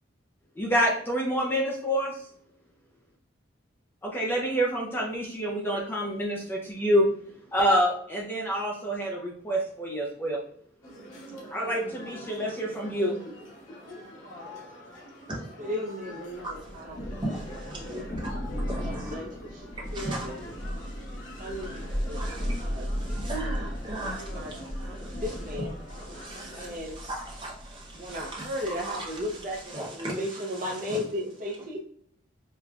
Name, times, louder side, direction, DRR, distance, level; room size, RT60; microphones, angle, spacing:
voice 1, 0.6-2.1 4.0-7.1 7.5-10.4 11.5-13.2, equal, 10° left, 0.4 m, -27 dB
sound 1, 10.8-26.8, equal, 85° left, 1.1 m, -45 dB
voice 2, 15.6-17.0 17.7-18.0 18.8-19.3 19.5-19.6 19.9-20.4 21.4-22.2 22.6-23.5 24.0-24.5 24.8-25.7 26.5-27.0 28.0-31.8, left 1 dB, 40° right, 0.5 m, -35 dB
voice 3, 16.4-16.8 17.2-18.0 18.7-19.1 19.8-25.6 25.9-31.0, right 1 dB, 25° right, 1.0 m, -39 dB
Thunder, 16.5-29.7, equal, 40° left, 1.0 m, -36 dB
5.0 x 2.2 x 2.3 m
head